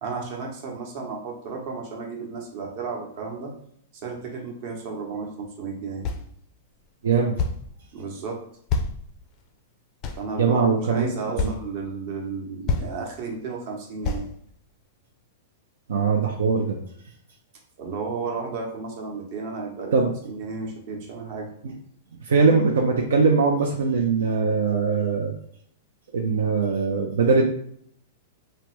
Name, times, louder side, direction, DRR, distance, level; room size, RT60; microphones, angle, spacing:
voice 1, 0.0-3.5 3.9-6.1 7.9-8.4 10.1-14.3 17.8-19.9 20.2-21.5, right 4 dB, 50° right, 1 dB, 0.8 m, -33 dB
sound 1, 6.0-6.3 7.4-7.7 8.7-9.4 10.0-10.7 11.4-11.6 12.3-12.4 12.7-12.9 14.0-14.3, left 4 dB, 35° left, 0.4 m, -27 dB
voice 2, 7.0-7.3 10.4-11.5 15.9-16.8 19.9-20.1 22.2-25.3 26.1-27.5, right 4 dB, 85° right, 1 dB, 0.4 m, -21 dB
3.3 x 2.0 x 3.0 m, 0.65 s
hypercardioid pair, 130°, 0 cm